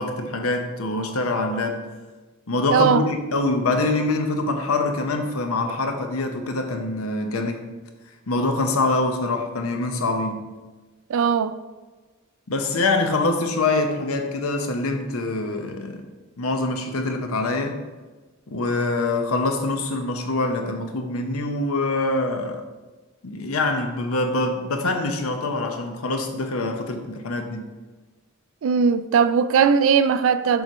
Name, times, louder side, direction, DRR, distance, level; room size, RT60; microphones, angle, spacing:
voice 1, 0.0-1.8 2.5-7.7 8.3-10.5 12.5-16.1 16.4-17.8 18.5-22.6 23.2-27.7, left 2 dB, 80° left, 0.8 m, -24 dB
voice 2, 2.7-3.0 11.1-11.5 28.6-30.6, right 6 dB, 65° right, 0.4 m, -19 dB
6.9 x 3.1 x 5.3 m
head